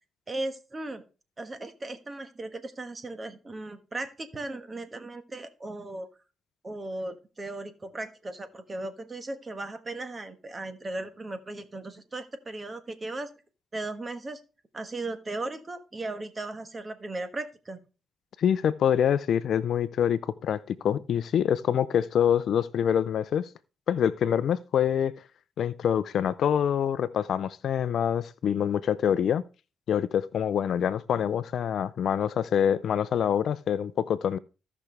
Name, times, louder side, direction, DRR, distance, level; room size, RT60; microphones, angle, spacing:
voice 1, 0.3-1.0 1.4-6.1 6.6-13.3 13.7-14.4 14.7-17.8, right 2 dB, 25° right, 1.3 m, -37 dB
voice 2, 18.4-23.5 23.9-25.1 25.6-29.4 29.9-34.4, left 9 dB, 65° left, 0.5 m, -25 dB
15.5 x 6.0 x 3.3 m
cardioid pair, 90°, 0 cm